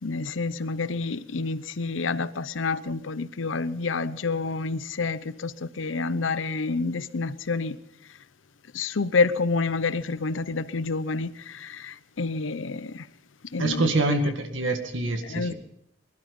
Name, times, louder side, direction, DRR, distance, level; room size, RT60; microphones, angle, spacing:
voice 1, 0.0-7.8 8.7-13.1 13.5-13.9 15.2-15.5, left 4 dB, 90° left, 0.8 m, -28 dB
voice 2, 13.6-15.5, right 2 dB, 85° right, 2.1 m, -25 dB
21.5 x 12.0 x 5.3 m
head